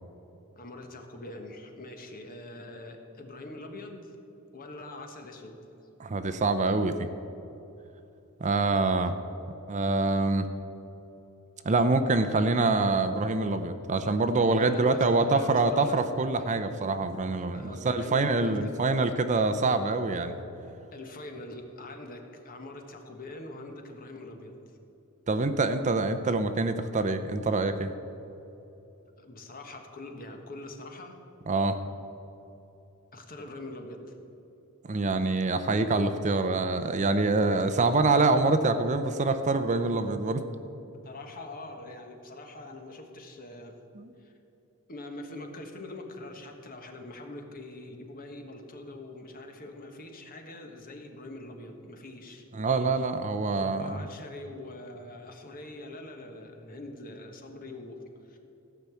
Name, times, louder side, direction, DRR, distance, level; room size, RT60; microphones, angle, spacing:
voice 1, 0.6-4.2 4.5-5.6 14.5-16.1 17.5-19.0 20.9-24.8 29.2-31.2 33.1-34.2 40.9-43.8 44.2-44.3 44.9-52.4 53.7-58.4, left 2 dB, 40° left, 4 dB, 1.4 m, -43 dB
voice 2, 6.0-7.1 8.4-9.1 9.7-10.5 11.6-20.4 25.3-27.9 31.5-31.8 34.9-40.4 44.0-44.1 52.5-54.0, right 3 dB, 35° right, 9 dB, 0.5 m, -25 dB
15.5 x 5.7 x 8.3 m, 3.0 s
head